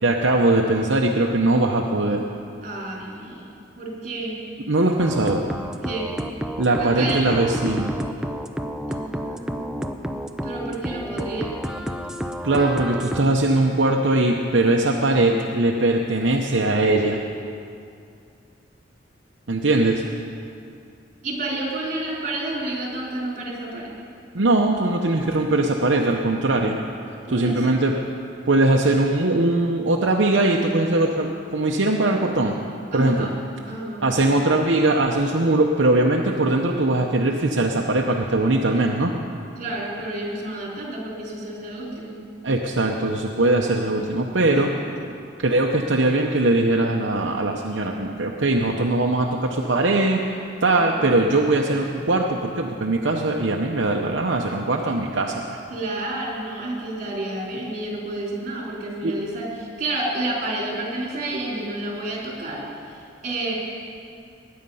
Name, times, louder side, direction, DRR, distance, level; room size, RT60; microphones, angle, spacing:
voice 1, 0.0-2.2 4.7-5.4 6.6-7.9 12.4-17.2 19.5-20.0 24.3-26.8 27.3-27.9 28.5-32.6 32.9-33.3 34.0-39.1 42.4-44.7 45.4-50.4 50.6-55.6 59.0-59.1, right 2 dB, 75° right, 0 dB, 0.9 m, -21 dB
voice 2, 2.6-4.4 5.8-6.1 6.8-7.4 8.9-10.0 10.4-11.6 15.1-15.4 21.2-23.9 27.3-27.8 32.9-33.4 33.7-34.0 39.6-42.2 44.5-44.8 50.8-51.4 55.7-63.0 63.2-63.5, right 2 dB, 45° right, -3 dB, 3.8 m, -30 dB
sound 1, 5.0-13.2, equal, 5° right, 0.6 m, -30 dB
21.0 x 9.5 x 5.6 m, 2.5 s
head